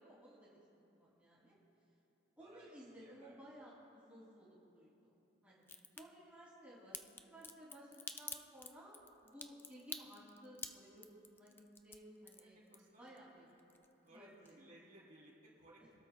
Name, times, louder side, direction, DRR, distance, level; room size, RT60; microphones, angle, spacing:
voice 1, 0.0-1.5 2.4-12.6 13.0-13.5 14.1-14.6 15.8-15.9, equal, 5° right, -8 dB, 2.8 m, -58 dB
voice 2, 2.4-3.4 12.3-13.1 14.0-16.0, right 1 dB, 40° right, -6 dB, 3.6 m, -62 dB
Crack, 5.7-6.0 6.9-13.2 13.5-14.2 14.5-14.6, left 4 dB, 10° left, 0.4 m, -48 dB
27.5 x 13.0 x 2.3 m, 2.9 s
head